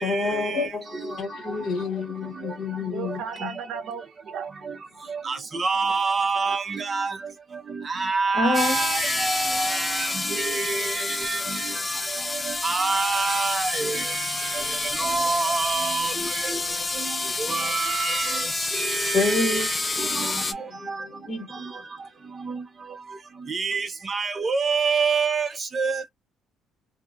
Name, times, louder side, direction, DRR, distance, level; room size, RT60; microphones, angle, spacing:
voice 1, 0.0-3.5 8.3-11.9 14.4-15.3 16.5-16.9 19.1-21.8, left 3 dB, 45° left, 1.6 m, -31 dB
voice 2, 1.8-2.2 2.9-4.5 5.0-6.0, right 7 dB, 65° right, 0.6 m, -38 dB
voice 3, 5.6-6.6 6.9-7.1 8.0-9.3 10.4-10.9 12.6-14.0 15.0-16.1 17.5-18.3 18.8-19.6 23.5-23.8 24.1-25.5 25.8-25.9, right 4 dB, 25° right, 0.6 m, -25 dB
sound 1, 8.5-20.5, left 3 dB, 15° left, 0.4 m, -28 dB
2.7 x 2.4 x 2.5 m
cardioid pair, 130°, 0 cm